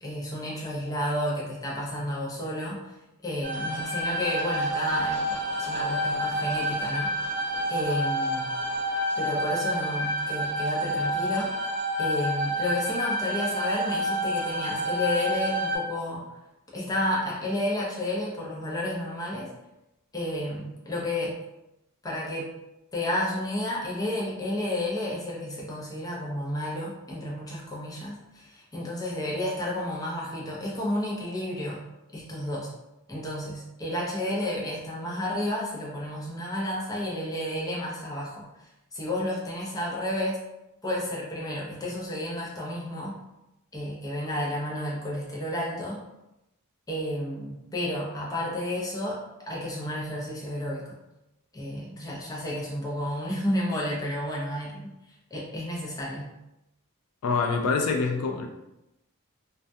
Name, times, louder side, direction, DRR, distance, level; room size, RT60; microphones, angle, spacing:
voice 1, 0.0-2.8 3.2-7.1 7.7-8.5 9.2-11.5 12.0-16.2 16.7-19.5 20.1-21.4 22.0-22.5 22.9-31.8 32.1-32.7 33.1-38.5 38.9-40.4 40.8-43.2 43.7-46.0 46.9-51.0 51.5-54.9 55.3-56.3, left 1 dB, 15° left, -5 dB, 0.6 m, -31 dB
sound 1, 3.4-15.8, equal, 35° right, 0.8 m, -28 dB
voice 2, 57.2-58.5, left 4 dB, 85° left, 3 dB, 0.3 m, -25 dB
2.2 x 2.1 x 2.6 m, 0.91 s
head